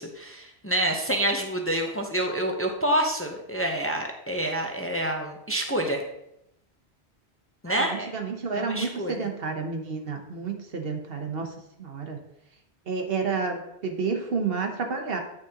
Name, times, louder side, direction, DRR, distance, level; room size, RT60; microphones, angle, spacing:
voice 1, 0.0-6.0 7.6-8.1 8.5-9.3, right 1 dB, 15° left, 2 dB, 0.7 m, -27 dB
voice 2, 7.7-12.2 12.9-15.2, right 4 dB, 60° right, 4 dB, 1.2 m, -30 dB
8.6 x 6.5 x 2.9 m, 0.81 s
omnidirectional pair, 1.1 m